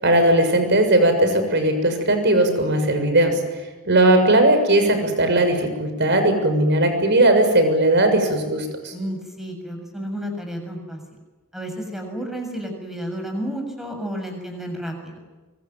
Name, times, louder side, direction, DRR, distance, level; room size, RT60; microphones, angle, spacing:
voice 1, 0.0-3.4 3.8-8.9, right 1 dB, 50° right, 7 dB, 6.7 m, -18 dB
voice 2, 8.9-11.0 11.5-15.2, equal, ahead, 4 dB, 7.0 m, -31 dB
25.0 x 25.0 x 9.3 m, 1.3 s
head